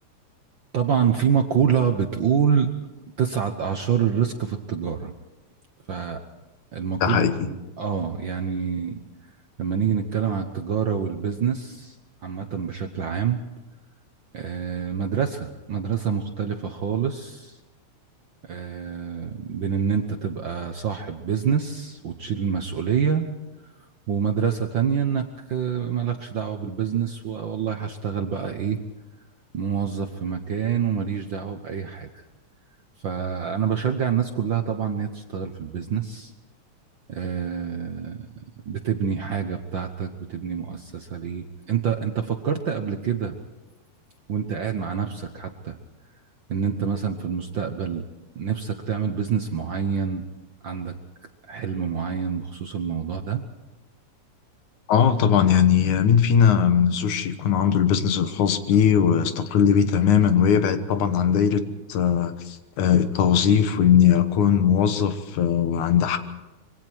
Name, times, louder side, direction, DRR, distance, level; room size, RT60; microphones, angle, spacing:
voice 1, 0.7-2.7 3.2-5.1 5.9-6.2 6.7-9.0 9.6-12.0 12.2-13.4 14.3-17.6 18.4-23.3 24.1-28.8 29.5-32.2 33.0-36.3 37.1-38.3 38.6-43.3 44.3-45.8 46.5-48.0 48.3-50.2 50.6-51.0 51.5-53.4, right 7 dB, 60° right, 5 dB, 1.3 m, -26 dB
voice 2, 7.0-7.4 54.9-61.6 61.9-66.2, left 8 dB, 80° left, 9 dB, 2.7 m, -19 dB
25.5 x 23.0 x 4.6 m, 1.0 s
omnidirectional pair, 3.4 m